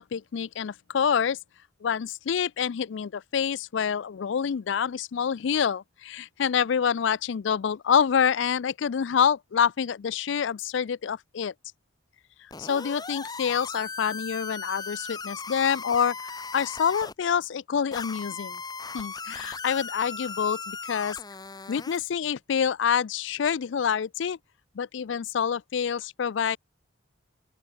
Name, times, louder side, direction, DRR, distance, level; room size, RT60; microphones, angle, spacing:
voice 1, 0.0-1.4 1.8-11.5 12.6-16.2 16.5-18.6 18.9-21.2 21.7-24.4 24.8-26.6, left 7 dB, 65° left, 0.4 m, -27 dB
sound 1, 12.5-17.1 17.9-22.1, left 4 dB, 20° left, 1.4 m, -38 dB
open air
head